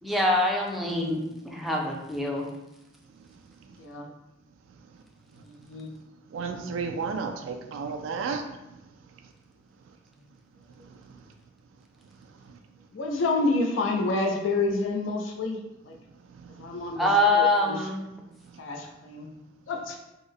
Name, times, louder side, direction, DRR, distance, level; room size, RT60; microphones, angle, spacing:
voice 1, 0.0-2.5 17.0-18.0, left 1 dB, ahead, -1 dB, 0.4 m, -24 dB
voice 2, 0.8-1.2 3.8-4.1 5.5-5.9 12.9-15.6 15.9-16.0 16.6-17.8 18.6-19.3 19.7-20.0, left 3 dB, 75° left, 2 dB, 0.4 m, -29 dB
voice 3, 6.3-8.4, right 5 dB, 80° right, 6 dB, 0.3 m, -32 dB
3.5 x 2.1 x 3.4 m, 0.94 s
head